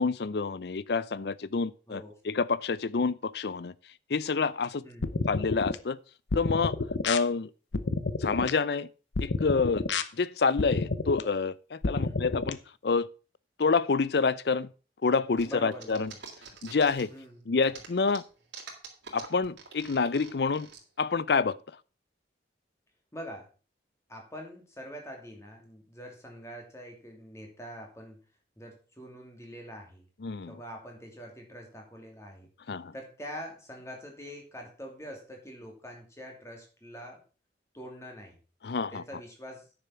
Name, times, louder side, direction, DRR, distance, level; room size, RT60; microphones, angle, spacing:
voice 1, 0.0-3.7 4.1-4.8 5.3-6.0 6.3-6.8 7.0-7.5 8.2-8.9 9.2-9.8 10.1-13.1 13.6-14.7 15.0-16.1 16.6-17.1 17.5-18.2 19.1-20.7 21.0-21.6 30.2-30.6 32.7-32.9 38.6-39.0, left 4 dB, 65° left, 0.5 m, -28 dB
voice 2, 4.8-5.1 11.9-12.2 15.4-16.2 17.1-17.5 23.1-23.5 24.1-28.2 28.6-30.1 30.5-32.5 32.9-37.2 37.7-38.4 38.9-39.7, equal, 15° left, 2.7 m, -44 dB
sound 1, 5.0-5.8 6.3-7.2 7.7-8.5 9.2-10.0 10.6-11.2 11.8-12.5, left 3 dB, 85° left, 0.8 m, -30 dB
sound 2, 15.4-17.2 17.6-20.8, right 5 dB, 85° right, 3.1 m, -45 dB
9.8 x 6.9 x 5.7 m
head